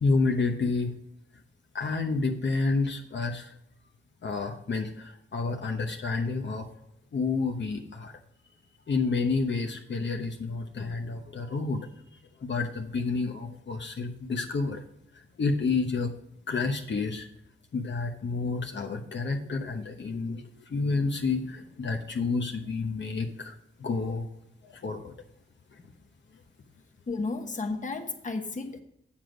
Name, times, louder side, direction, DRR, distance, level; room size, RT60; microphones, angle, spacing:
voice 1, 0.0-0.9 1.7-3.5 4.2-6.7 7.1-8.1 8.9-11.9 12.4-14.8 15.4-16.1 16.5-17.2 17.7-23.5 23.8-24.3 24.6-25.1, left 4 dB, 60° left, 3 dB, 1.0 m, -29 dB
voice 2, 27.1-28.8, left 3 dB, 35° left, 5 dB, 1.1 m, -33 dB
7.8 x 7.2 x 4.9 m, 0.74 s
wide cardioid pair, 90°, 21 cm